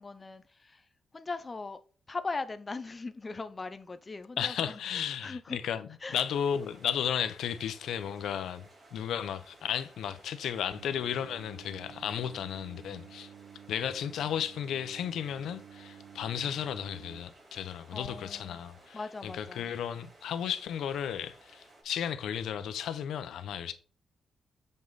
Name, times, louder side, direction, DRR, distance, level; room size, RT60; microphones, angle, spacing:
voice 1, 0.0-1.8 2.1-5.6 6.0-6.2 17.9-18.6 18.9-19.7, left 3 dB, 20° left, 0.5 m, -40 dB
voice 2, 4.4-13.3 13.7-23.7, left 9 dB, 85° left, 0.7 m, -34 dB
sound 1, 6.1-21.8, right 2 dB, 40° right, 3.3 m, -58 dB
Singing, 10.7-17.2, right 9 dB, 90° right, 0.4 m, -51 dB
7.6 x 5.4 x 4.0 m
wide cardioid pair, 150°, 0 cm